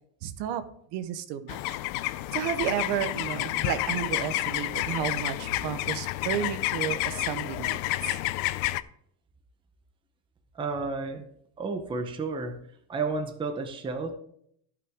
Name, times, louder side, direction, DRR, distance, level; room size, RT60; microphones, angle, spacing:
voice 1, 0.2-0.6 0.9-1.8 2.3-7.8 8.0-8.2, right 10 dB, 60° right, 11 dB, 1.1 m, -32 dB
sound 1, 1.5-8.8, left 16 dB, 55° left, 0.5 m, -30 dB
voice 2, 10.5-11.3 11.6-12.6 12.9-14.1, right 4 dB, 10° right, 5 dB, 0.7 m, -31 dB
14.5 x 6.2 x 3.6 m, 0.68 s
cardioid pair, 170°, 44 cm